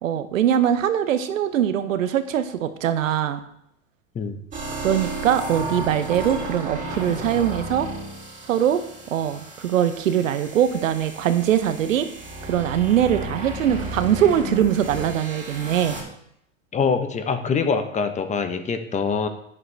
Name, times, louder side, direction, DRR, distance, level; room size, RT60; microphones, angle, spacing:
voice 1, 0.0-3.4 4.8-7.9 8.5-8.8 9.1-12.1 12.4-16.0, right 10 dB, 85° right, 11 dB, 0.8 m, -22 dB
sound 1, 4.5-16.0, right 1 dB, 20° right, 2.9 m, -34 dB
voice 2, 16.7-19.3, left 5 dB, 20° left, 8 dB, 0.8 m, -24 dB
9.7 x 6.4 x 3.3 m, 0.75 s
hypercardioid pair, 110°, 38 cm